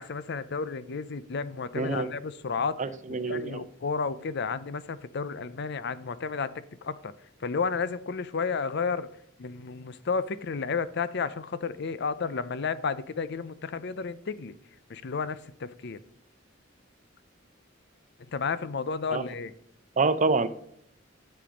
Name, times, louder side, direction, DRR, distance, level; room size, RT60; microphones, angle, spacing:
voice 1, 0.0-2.8 3.3-7.1 7.4-9.1 9.4-14.5 14.9-16.0 18.3-19.5, left 5 dB, 60° left, 0.6 m, -32 dB
voice 2, 1.8-2.1 2.8-3.6 19.1-19.2 20.0-20.5, right 3 dB, 40° right, 0.7 m, -26 dB
11.5 x 7.0 x 5.2 m
head